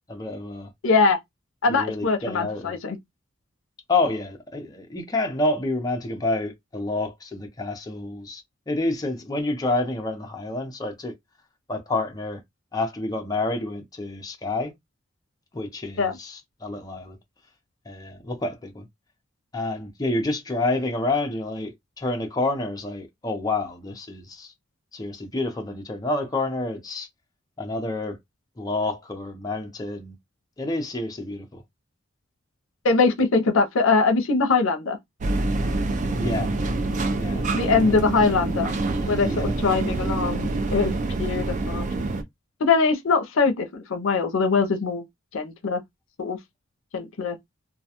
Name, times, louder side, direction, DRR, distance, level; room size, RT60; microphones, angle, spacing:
voice 1, 0.1-0.7 1.7-2.8 3.9-11.1 11.7-12.4 12.7-14.7 15.5-17.2 17.9-18.9 19.5-24.5 24.9-27.1 27.6-28.2 28.6-30.1 30.6-31.6 36.1-36.5 37.2-37.4 37.9-38.0 39.2-39.5, left 2 dB, 20° left, 0.6 m, -28 dB
voice 2, 0.8-1.2 1.6-3.0 16.0-16.2 32.8-35.0 37.5-38.7 39.1-40.9 41.2-41.9 42.6-45.0 45.3-45.8 46.2-46.4 46.9-47.4, left 4 dB, 80° left, 0.5 m, -22 dB
sound 1, 35.2-42.2, right 2 dB, 40° right, 0.4 m, -26 dB
2.3 x 2.2 x 2.8 m
head